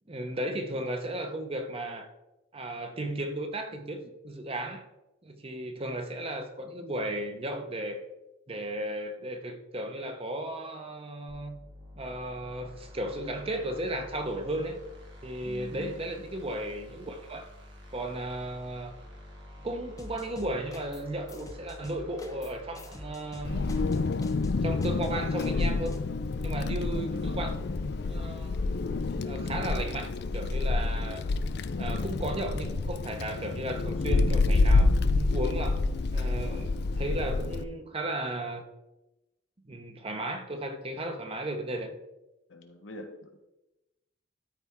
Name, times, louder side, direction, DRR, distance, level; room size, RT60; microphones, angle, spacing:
voice 1, 0.1-2.1 2.5-4.9 5.2-8.0 8.5-11.6 12.0-14.8 15.2-17.5 17.9-18.9 19.6-23.7 24.6-26.0 26.4-27.5 28.1-28.6 29.2-31.2 31.8-35.8 36.1-38.6 39.7-41.9, right 1 dB, 30° right, 6 dB, 0.8 m, -35 dB
sound 1, 11.3-24.0, left 1 dB, 70° right, 2.2 m, -49 dB
voice 2, 15.4-16.1 42.5-43.4, left 1 dB, 80° left, 3 dB, 1.3 m, -45 dB
sound 2, 20.0-21.0 21.3-26.0, left 2 dB, 20° left, 0.8 m, -47 dB
Wind, 23.4-37.6, left 3 dB, 60° left, 0.4 m, -28 dB
13.0 x 4.4 x 3.6 m, 0.96 s
head